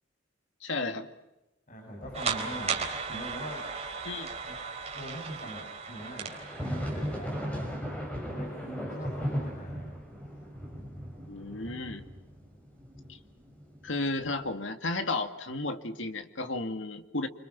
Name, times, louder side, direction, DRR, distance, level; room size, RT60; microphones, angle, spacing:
voice 1, 0.6-1.1 4.0-4.3 11.3-12.0 13.1-13.2 13.8-17.3, left 2 dB, 75° left, 7 dB, 2.1 m, -33 dB
voice 2, 1.7-3.7 4.4-4.6 4.9-7.7 8.2-9.9, equal, 40° left, 0 dB, 7.6 m, -42 dB
sound 1, 2.0-5.2 5.9-14.5, equal, 5° left, 6.0 m, -38 dB
sound 2, 2.1-7.4, right 5 dB, 35° right, 3.8 m, -36 dB
28.5 x 26.0 x 5.9 m, 0.99 s
head